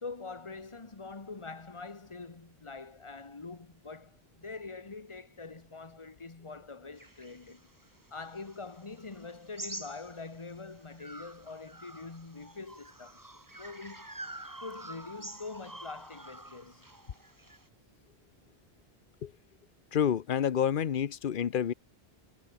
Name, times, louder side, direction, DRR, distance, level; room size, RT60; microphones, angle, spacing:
voice 1, 0.0-7.7 8.1-14.1 14.6-16.9, left 4 dB, 30° left, 1.5 m, -44 dB
sound 1, 7.0-10.5 11.0-17.7, right 1 dB, 20° right, 2.1 m, -47 dB
voice 2, 19.9-21.7, left 8 dB, 55° left, 0.9 m, -28 dB
omnidirectional pair, 1.0 m